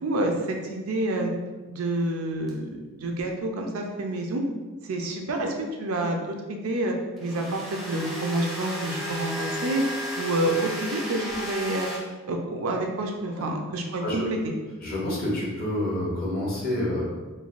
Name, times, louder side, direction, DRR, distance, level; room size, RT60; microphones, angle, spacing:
voice 1, 0.0-1.3 1.7-4.4 4.8-11.9 12.3-14.5, right 1 dB, 80° right, 2 dB, 0.4 m, -28 dB
sound 1, 2.5-2.6 7.2-12.0, equal, ahead, 0.5 m, -33 dB
voice 2, 14.8-17.0, left 1 dB, 45° left, -5 dB, 0.7 m, -28 dB
3.2 x 2.3 x 2.4 m, 1.2 s
head